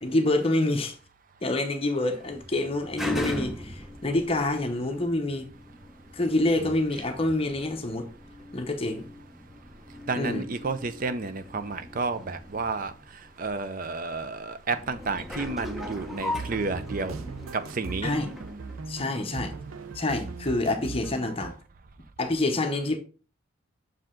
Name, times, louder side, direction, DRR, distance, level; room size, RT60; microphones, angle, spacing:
voice 1, 0.0-0.9 1.4-5.5 6.1-8.1 8.5-9.1 10.2-10.4 18.0-18.3 18.9-19.5 19.9-21.6 22.2-23.0, left 2 dB, 30° left, 0.7 m, -27 dB
sound 1, 2.3-19.6 20.2-20.3, left 1 dB, ahead, 0.6 m, -39 dB
voice 2, 10.1-12.9 13.4-17.2 17.5-18.1, right 4 dB, 40° right, 0.5 m, -31 dB
sound 2, 15.6-21.6, right 4 dB, 85° right, 0.5 m, -39 dB
6.3 x 4.7 x 3.7 m
head